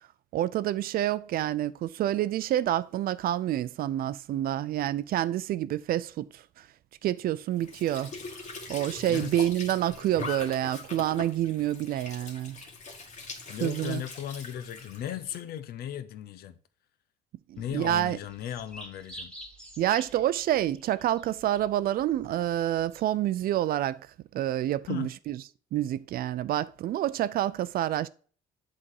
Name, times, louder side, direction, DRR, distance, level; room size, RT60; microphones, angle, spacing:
voice 1, 0.3-6.4 7.0-8.1 8.7-12.6 13.6-14.0 17.5-18.2 19.8-24.0 24.3-25.4 25.7-28.1, right 12 dB, 60° right, 0.5 m, -28 dB
Squeak / Sink (filling or washing) / Trickle dribble, 7.5-15.4, left 4 dB, 45° left, 1.9 m, -42 dB
voice 2, 9.1-9.5 13.5-16.6 17.6-19.3 24.9-25.1, left 10 dB, 65° left, 0.8 m, -36 dB
sound 1, 17.6-23.1, equal, 5° left, 1.6 m, -49 dB
7.7 x 4.2 x 4.7 m
cardioid pair, 110°, 17 cm